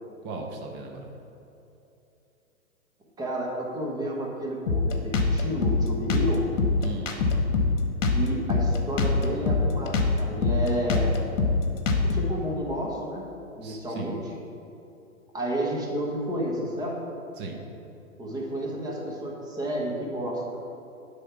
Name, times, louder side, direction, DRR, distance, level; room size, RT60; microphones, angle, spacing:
voice 1, 0.2-1.1 6.8-7.2 13.6-14.1 17.4-17.6, right 3 dB, 25° right, 2 dB, 0.9 m, -37 dB
voice 2, 3.2-6.4 8.1-11.2 12.1-13.2 13.5-14.1 15.3-17.0 18.2-20.4, right 1 dB, 10° right, -3 dB, 1.2 m, -31 dB
Drum kit, 4.7-12.3, left 3 dB, 65° left, 1.2 m, -24 dB
9.4 x 3.7 x 5.8 m, 2.9 s
hypercardioid pair, 120°, 42 cm